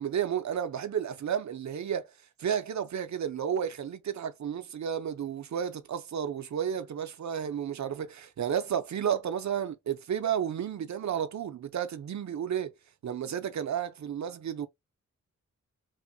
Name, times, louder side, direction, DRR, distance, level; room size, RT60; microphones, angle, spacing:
voice 1, 0.0-2.0 2.4-12.7 13.0-14.7, right 8 dB, 65° right, 0.5 m, -32 dB
3.0 x 2.1 x 2.6 m
wide cardioid pair, 100°, 31 cm